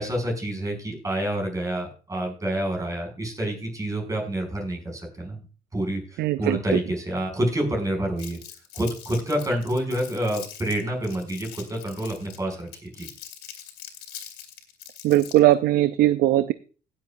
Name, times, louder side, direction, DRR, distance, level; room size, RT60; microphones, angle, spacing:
voice 1, 0.0-5.4 5.7-8.4 8.7-13.1, right 1 dB, 20° right, 1 dB, 5.8 m, -28 dB
voice 2, 6.2-6.6 15.0-16.5, right 14 dB, 70° right, 13 dB, 0.5 m, -19 dB
Crumpling crinkling, 8.2-15.5, left 10 dB, 80° left, 2.3 m, -43 dB
18.0 x 7.9 x 2.5 m, 0.38 s
cardioid pair, 110°, 17 cm